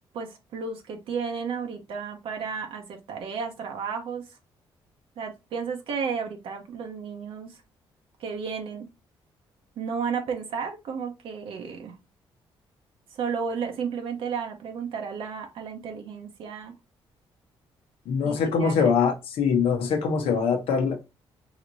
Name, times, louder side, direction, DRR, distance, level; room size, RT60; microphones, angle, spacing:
voice 1, 0.1-4.4 5.2-7.6 8.2-8.9 9.8-12.0 13.1-16.7 18.2-18.9 20.2-20.3, right 6 dB, 75° right, 0.9 m, -33 dB
voice 2, 18.1-21.0, left 6 dB, 80° left, 0.8 m, -23 dB
5.0 x 2.9 x 2.6 m
cardioid pair, 95°, 10 cm